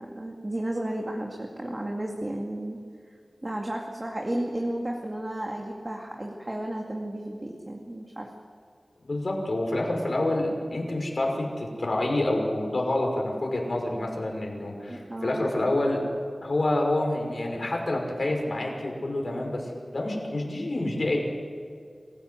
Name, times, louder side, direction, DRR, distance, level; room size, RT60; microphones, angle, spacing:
voice 1, 0.0-2.8 3.4-8.3 14.9-15.5, right 1 dB, 30° right, 0 dB, 2.4 m, -33 dB
voice 2, 9.0-16.0 16.4-21.2, left 1 dB, 60° left, 1 dB, 5.8 m, -28 dB
27.5 x 16.0 x 8.0 m, 2.3 s
wide cardioid pair, 75°, 0 cm